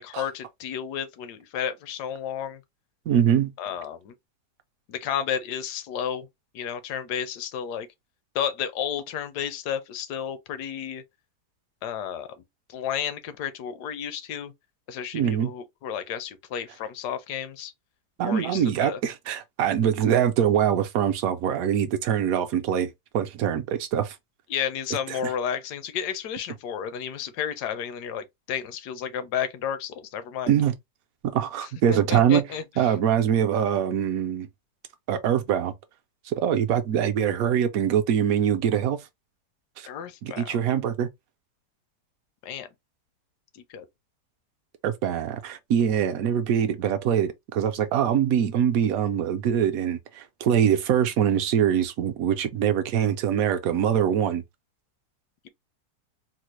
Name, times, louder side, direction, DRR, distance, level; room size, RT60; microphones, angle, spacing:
voice 1, 0.0-2.6 3.6-4.1 4.9-6.3 6.5-7.9 8.3-11.0 11.8-12.3 12.7-14.5 14.9-17.7 18.2-19.0 24.5-30.5 31.9-32.9 39.9-40.6 42.4-42.7 43.5-43.8, left 8 dB, 75° left, 1.1 m, -32 dB
voice 2, 3.1-3.5 15.1-15.5 18.2-24.2 25.1-25.3 30.5-30.7 31.2-32.4 32.8-34.5 35.1-35.7 36.3-39.0 39.8-39.9 40.2-41.1 44.8-54.4, right 9 dB, 70° right, 0.9 m, -23 dB
4.0 x 2.0 x 3.0 m
omnidirectional pair, 1.8 m